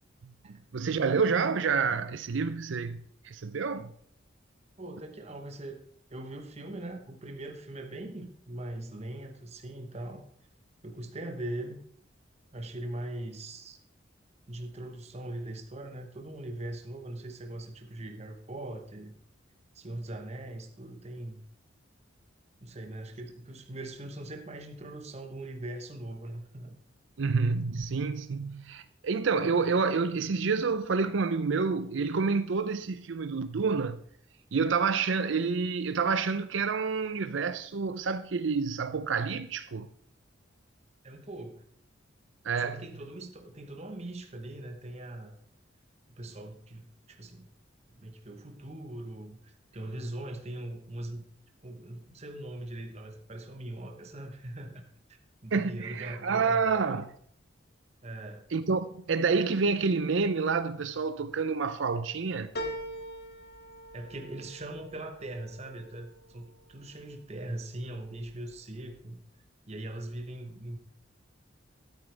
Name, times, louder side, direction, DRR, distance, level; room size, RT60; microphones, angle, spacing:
voice 1, 0.2-3.9 27.2-34.0 34.5-39.9 42.4-42.8 55.5-57.1 58.5-62.5, right 5 dB, 70° right, 0.5 m, -28 dB
voice 2, 4.8-5.8 6.1-10.2 10.8-11.8 12.5-13.8 14.5-19.1 19.7-21.4 22.6-26.8 41.0-41.6 42.6-45.4 46.1-47.5 47.9-51.2 51.6-54.8 55.4-57.1 58.0-58.5 63.9-69.2 69.7-70.8, right 1 dB, 35° right, 1.1 m, -41 dB
sound 1, 62.5-67.3 67.8-68.5 68.9-69.0, equal, 55° left, 1.7 m, -43 dB
12.5 x 9.1 x 3.3 m
head